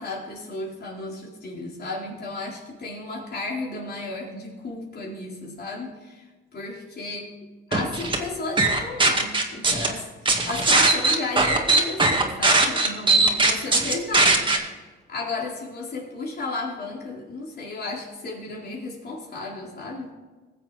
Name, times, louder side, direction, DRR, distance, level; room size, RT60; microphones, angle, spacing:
voice 1, 0.0-6.2 6.5-7.3 7.7-10.1 10.4-14.5 14.8-20.1, left 3 dB, 55° left, -2 dB, 4.1 m, -33 dB
sound 1, 7.7-8.2 8.6-9.9 10.3-14.6, right 3 dB, 25° right, 2.0 m, -19 dB
19.5 x 7.5 x 4.2 m, 1.3 s
cardioid pair, 90°, 20 cm